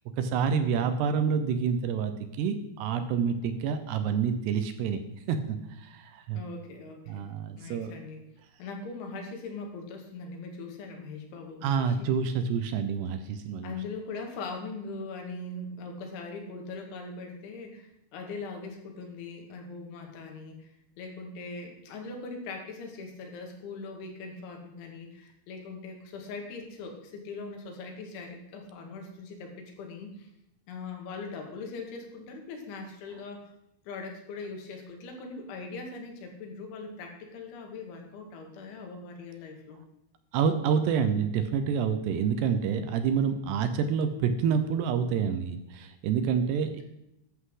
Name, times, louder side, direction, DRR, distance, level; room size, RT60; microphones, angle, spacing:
voice 1, 0.2-2.1 2.4-5.0 5.3-6.4 7.1-7.9 11.6-13.7 40.3-46.8, right 6 dB, 75° right, 9 dB, 2.7 m, -28 dB
voice 2, 6.3-7.3 7.6-8.2 8.6-12.1 13.6-30.3 30.7-33.4 33.9-39.8, left 3 dB, 85° left, 2 dB, 4.4 m, -41 dB
14.5 x 11.0 x 3.8 m, 0.83 s
omnidirectional pair, 5.3 m